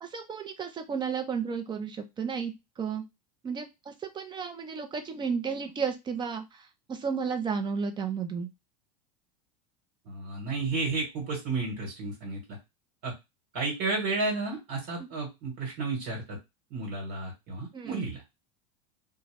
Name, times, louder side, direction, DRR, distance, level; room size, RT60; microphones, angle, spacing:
voice 1, 0.0-3.0 3.4-8.5 15.0-15.1 17.7-18.1, right 6 dB, 20° right, 7 dB, 0.5 m, -33 dB
voice 2, 10.1-12.6 13.0-13.1 13.5-16.4 16.7-18.2, right 3 dB, 55° right, -1 dB, 1.4 m, -32 dB
2.2 x 2.1 x 3.3 m, 0.22 s
hypercardioid pair, 90°, 21 cm